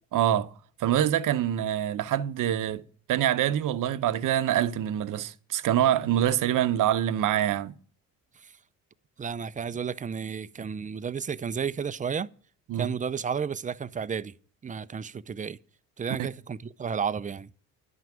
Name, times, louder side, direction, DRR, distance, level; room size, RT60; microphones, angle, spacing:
voice 1, 0.1-0.5 0.8-2.8 3.1-7.7 12.7-12.9, right 11 dB, 60° right, 0.8 m, -25 dB
voice 2, 9.2-12.3 12.7-14.3 14.6-15.6 16.0-17.5, right 6 dB, 20° right, 0.5 m, -32 dB
11.5 x 5.9 x 9.1 m
cardioid pair, 100°, 36 cm